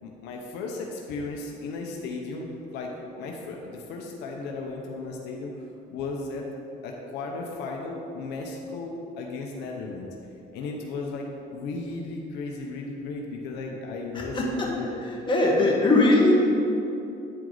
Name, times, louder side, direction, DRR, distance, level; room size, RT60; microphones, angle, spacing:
voice 1, 0.0-5.5 5.9-6.4 6.8-10.1 10.5-15.0 15.6-15.7, left 3 dB, 90° left, 0 dB, 0.8 m, -35 dB
voice 2, 15.3-16.3, left 2 dB, 30° left, -3 dB, 1.6 m, -20 dB
9.7 x 4.7 x 3.9 m, 2.8 s
cardioid pair, 110°, 17 cm